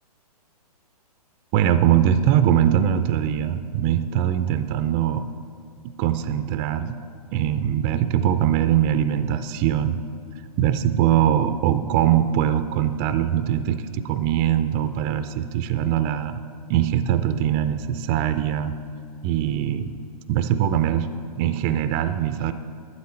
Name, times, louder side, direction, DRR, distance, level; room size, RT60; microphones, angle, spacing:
voice 1, 1.5-5.3 6.0-7.0 7.3-10.0 10.6-16.4 16.7-18.8 19.2-19.9 20.3-22.5, right 10 dB, 25° right, 11 dB, 0.3 m, -22 dB
12.0 x 9.4 x 4.3 m, 2.6 s
hypercardioid pair, 135°, 20 cm